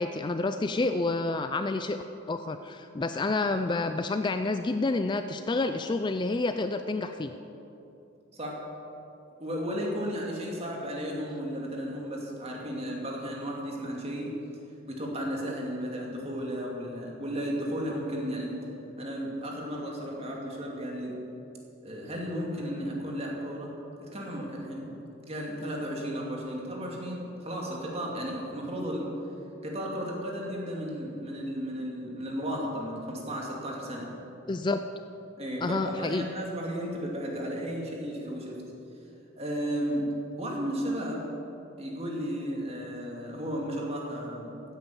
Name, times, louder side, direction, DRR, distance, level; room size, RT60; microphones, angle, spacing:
voice 1, 0.0-7.3 34.5-34.8 35.6-36.3, left 3 dB, 20° left, 8 dB, 0.4 m, -29 dB
voice 2, 9.4-14.3 14.9-18.5 19.0-21.2 21.8-23.7 24.0-24.9 25.2-29.1 29.6-34.1 35.4-38.6 39.4-40.1 40.4-41.2 41.8-44.5, equal, 30° right, -1 dB, 2.5 m, -34 dB
15.0 x 9.2 x 7.1 m, 3.0 s
head